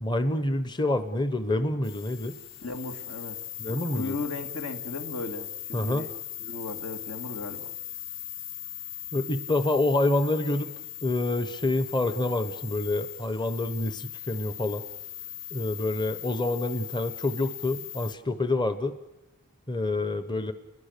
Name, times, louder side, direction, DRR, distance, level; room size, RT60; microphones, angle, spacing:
voice 1, 0.0-2.4 3.6-4.1 5.7-6.0 9.1-10.7 11.0-14.8 15.5-19.0 19.7-20.5, left 2 dB, 20° left, 11 dB, 0.8 m, -27 dB
sound 1, 1.8-18.1, left 11 dB, 60° left, 2.0 m, -39 dB
voice 2, 2.6-3.4 3.7-6.1 6.4-7.7, left 3 dB, 75° left, 6 dB, 2.6 m, -36 dB
30.0 x 22.0 x 6.7 m, 1.0 s
head